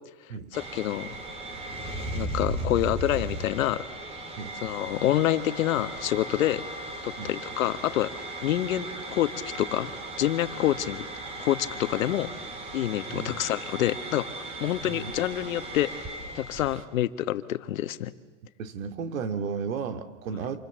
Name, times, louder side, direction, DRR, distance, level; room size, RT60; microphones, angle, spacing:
voice 1, 0.5-1.2 2.1-3.8 4.6-6.6 7.0-8.1 8.4-11.0 11.4-12.3 12.7-14.3 14.6-16.1 16.3-18.1, left 13 dB, 85° left, 11 dB, 1.5 m, -27 dB
sound 1, 0.5-16.8, right 1 dB, 15° right, 2.5 m, -37 dB
voice 2, 13.1-13.4 14.8-15.1 18.6-20.6, right 6 dB, 90° right, 8 dB, 2.7 m, -34 dB
28.0 x 27.5 x 7.5 m, 1.3 s
supercardioid pair, 170°, 39 cm